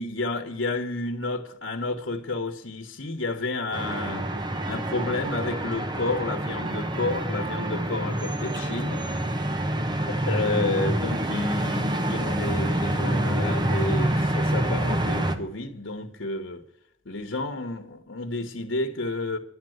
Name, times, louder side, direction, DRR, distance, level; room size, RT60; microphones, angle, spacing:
voice 1, 0.0-4.3 4.7-9.0 10.3-16.6 17.0-19.4, left 2 dB, 85° left, 1.2 m, -31 dB
sound 1, 3.7-15.4, right 1 dB, 25° right, 1.0 m, -27 dB
11.5 x 9.0 x 7.9 m
head